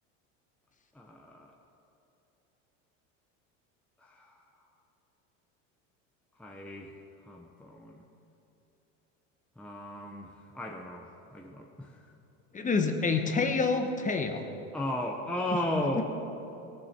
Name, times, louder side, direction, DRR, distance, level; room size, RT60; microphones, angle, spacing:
voice 1, 0.9-1.5 4.0-4.4 6.4-6.9 7.2-8.0 9.6-12.1 14.7-16.0, left 1 dB, 5° left, 0 dB, 0.8 m, -36 dB
voice 2, 12.5-14.5 15.7-16.0, left 4 dB, 20° left, 6 dB, 1.1 m, -28 dB
17.5 x 7.4 x 5.8 m, 2.9 s
supercardioid pair, 105°, 38 cm